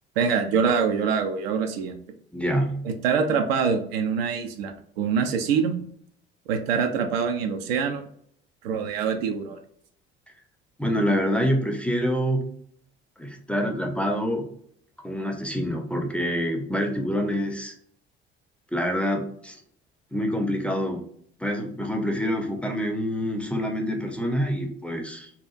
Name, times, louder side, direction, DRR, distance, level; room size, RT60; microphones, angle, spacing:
voice 1, 0.2-2.0 2.8-5.8 6.5-8.0 8.6-9.6, right 6 dB, 70° right, 6 dB, 0.5 m, -25 dB
voice 2, 2.3-2.8 10.8-12.5 13.2-14.5 15.0-17.7 18.7-19.6 20.1-21.0 21.4-25.3, equal, 5° left, 2 dB, 0.5 m, -26 dB
2.8 x 2.3 x 2.4 m, 0.64 s
figure-of-eight pair, 55°, 31 cm